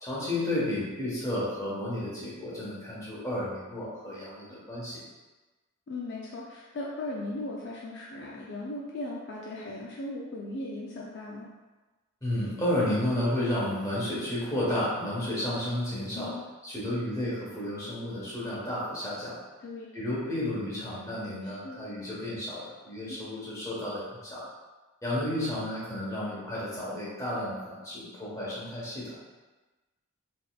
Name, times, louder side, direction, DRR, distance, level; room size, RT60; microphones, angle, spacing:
voice 1, 0.0-5.0 12.2-16.3 16.6-19.4 19.9-24.4 25.0-29.1, left 1 dB, 15° left, -8 dB, 1.1 m, -32 dB
voice 2, 5.9-11.5 16.1-16.5 19.6-19.9 21.4-21.8 23.1-23.2, left 2 dB, 50° left, -4 dB, 0.4 m, -38 dB
4.0 x 3.0 x 2.3 m, 1.2 s
head